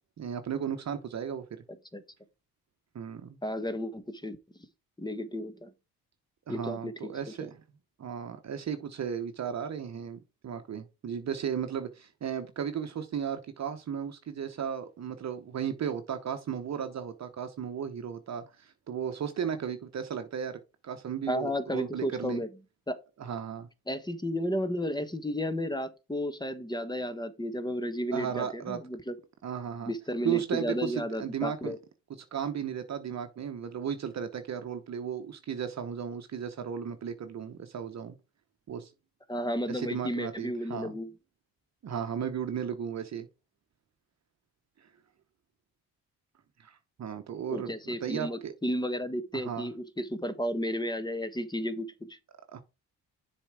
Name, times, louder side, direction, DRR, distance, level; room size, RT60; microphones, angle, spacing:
voice 1, 0.2-1.6 2.9-3.4 6.5-7.6 8.0-22.4 23.2-23.7 28.1-28.8 29.4-29.9 30.2-31.7 32.3-38.1 38.7-38.9 39.7-40.9 41.8-43.3 44.8-44.9 46.6-48.5 49.3-49.7 52.5-52.6, right 8 dB, 45° right, 1.0 m, -35 dB
voice 2, 3.4-4.4 5.0-5.7 6.5-6.9 7.4-7.5 21.3-22.5 22.9-23.0 23.9-29.1 29.9-31.8 39.3-41.1 47.5-52.2, equal, 10° left, 1.2 m, -33 dB
7.0 x 4.5 x 4.7 m
supercardioid pair, 70°, 37 cm